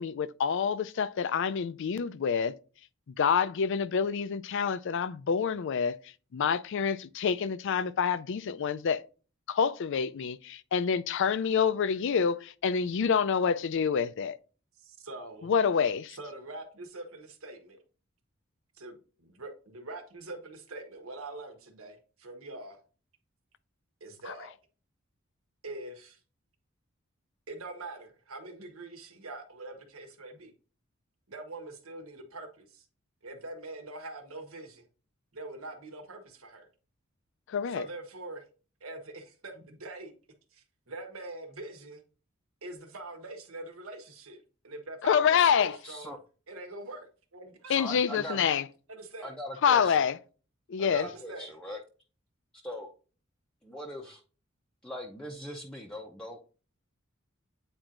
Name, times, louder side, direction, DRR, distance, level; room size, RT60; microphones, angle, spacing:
voice 1, 0.0-2.5 3.2-6.0 6.3-9.0 9.5-14.4 15.4-16.2 37.5-37.8 45.1-45.8 47.7-48.6 49.6-50.2 50.7-51.1, left 6 dB, 60° left, 0.4 m, -27 dB
voice 2, 14.8-15.5 16.1-17.8 18.8-22.8 24.0-24.5 25.6-26.2 27.5-30.5 31.3-32.8 33.2-34.9 35.3-36.7 37.7-38.5 38.8-40.1 40.5-42.0 42.6-46.1 46.5-47.9 48.9-49.3 50.9-51.6, right 2 dB, 75° right, 1.3 m, -44 dB
voice 3, 45.8-46.2 47.7-48.5 49.2-50.1 50.8-51.8 52.6-52.9 53.6-54.2 54.8-56.4, equal, 5° left, 0.6 m, -41 dB
8.9 x 4.4 x 2.5 m
head